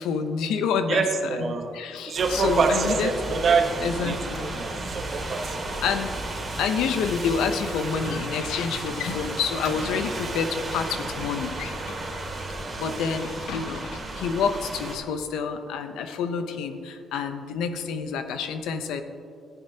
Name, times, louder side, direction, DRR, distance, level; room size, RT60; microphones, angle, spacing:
voice 1, 0.0-1.0 1.4-3.4 3.8-4.6 5.8-6.1 6.6-12.0 12.8-19.0, left 6 dB, 90° left, 8 dB, 0.7 m, -28 dB
voice 2, 0.9-1.8 2.1-5.6, right 4 dB, 55° right, 5 dB, 1.1 m, -25 dB
sound 1, 2.2-15.0, right 2 dB, 35° right, 2.2 m, -33 dB
14.0 x 10.0 x 2.9 m, 2.4 s
cardioid pair, 90°, 0 cm